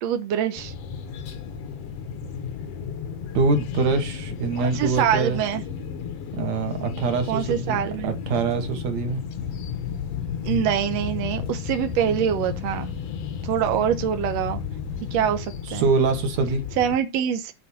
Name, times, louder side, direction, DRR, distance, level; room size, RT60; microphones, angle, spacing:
voice 1, 0.0-0.7 4.6-5.6 7.3-8.1 10.4-12.9 13.4-14.6 15.1-15.9 16.8-17.5, right 9 dB, 75° right, 1.6 m, -24 dB
sound 1, 0.6-17.0, left 6 dB, 65° left, 1.6 m, -35 dB
voice 2, 3.3-5.4 6.3-9.2 15.7-16.6, right 4 dB, 55° right, 2.6 m, -24 dB
sound 2, 9.4-15.4, left 7 dB, 85° left, 3.3 m, -34 dB
9.8 x 4.4 x 5.9 m
omnidirectional pair, 4.2 m